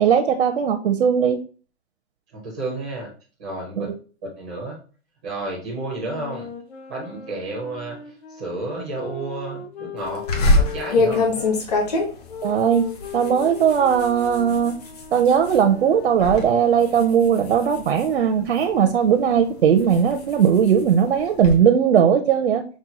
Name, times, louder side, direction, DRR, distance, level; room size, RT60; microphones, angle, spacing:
voice 1, 0.0-1.4 3.8-3.9 12.4-12.9 13.1-14.8 15.1-22.7, right 8 dB, 75° right, 5 dB, 0.6 m, -18 dB
voice 2, 2.3-3.1 3.4-3.9 4.2-4.8 5.2-6.5 6.9-11.3, right 2 dB, 5° right, -5 dB, 0.5 m, -31 dB
sound 1, 5.9-11.6 12.3-17.8, left 5 dB, 65° left, 1.6 m, -38 dB
sound 2, 10.3-15.6 16.0-16.4 16.8-18.8 19.4-21.6, left 2 dB, 35° left, 0.9 m, -24 dB
6.1 x 2.2 x 3.9 m, 0.38 s
hypercardioid pair, 175°, 33 cm